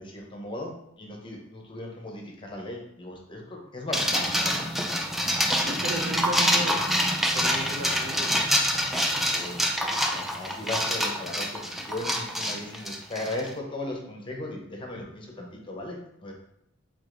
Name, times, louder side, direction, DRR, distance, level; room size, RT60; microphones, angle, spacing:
voice 1, 0.0-4.7 9.3-9.6 10.1-16.3, left 2 dB, 25° left, 0 dB, 0.8 m, -37 dB
sound 1, 3.9-13.5, equal, ahead, 0.4 m, -26 dB
voice 2, 5.4-7.0 7.3-8.5, right 1 dB, 55° right, 2 dB, 0.7 m, -35 dB
4.9 x 3.8 x 2.5 m, 0.81 s
head